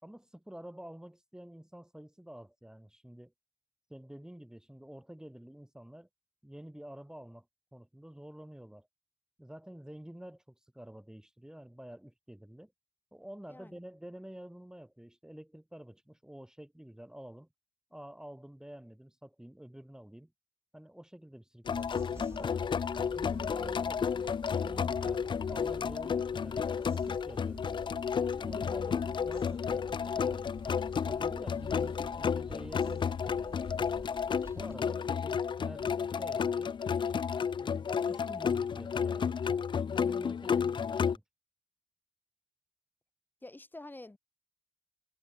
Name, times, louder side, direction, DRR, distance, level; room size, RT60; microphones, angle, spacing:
voice 1, 0.0-3.3 3.9-6.1 6.4-7.5 7.7-8.9 9.4-12.7 13.1-17.5 17.9-20.3 20.7-22.6 23.0-27.9 28.4-30.5 31.0-33.7 34.5-36.8 37.6-39.3 39.8-41.2, right 1 dB, 10° right, 5.4 m, -49 dB
sound 1, 21.6-41.2, left 6 dB, 70° left, 0.4 m, -32 dB
sound 2, 21.7-34.8, right 2 dB, 30° right, 3.8 m, -50 dB
voice 2, 43.4-44.2, left 2 dB, 25° left, 2.1 m, -47 dB
wide cardioid pair, 75°, 8 cm